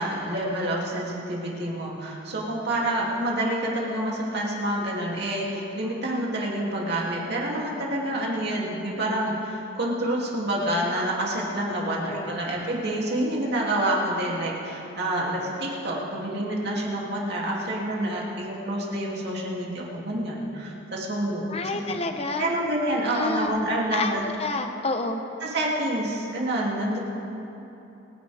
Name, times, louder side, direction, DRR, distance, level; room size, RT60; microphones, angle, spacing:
voice 1, 0.0-21.5 22.4-24.2 25.4-27.0, right 1 dB, 55° right, -4 dB, 2.9 m, -28 dB
voice 2, 12.0-12.4 21.5-22.5 23.1-23.5 23.9-25.2, left 3 dB, 30° left, 5 dB, 0.9 m, -29 dB
28.5 x 10.0 x 3.5 m, 3.0 s
head